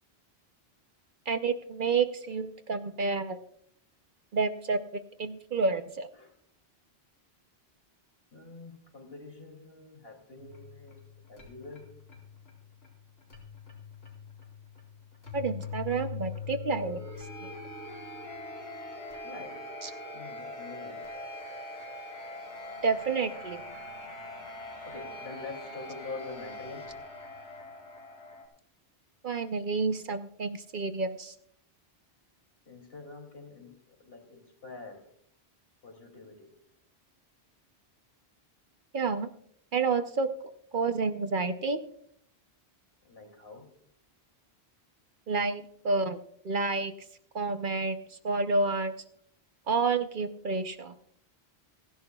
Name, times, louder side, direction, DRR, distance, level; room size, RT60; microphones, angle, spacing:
voice 1, 1.3-3.4 4.3-6.1 15.3-17.0 17.4-17.5 19.8-19.9 22.8-23.6 29.2-31.3 38.9-39.3 39.7-40.3 40.7-41.8 45.3-46.2 46.4-46.9 47.3-48.9 49.7-50.9, right 4 dB, 55° right, 9 dB, 0.9 m, -29 dB
voice 2, 8.3-11.0 11.3-11.9 16.3-16.5 19.2-19.7 20.1-21.1 24.9-27.0 32.7-35.1 35.8-36.5 43.0-43.7, left 3 dB, 65° left, 3 dB, 3.1 m, -45 dB
sound 1, 10.4-28.4, left 3 dB, 85° left, 4.6 m, -43 dB
28.5 x 11.0 x 2.3 m, 0.65 s
omnidirectional pair, 1.1 m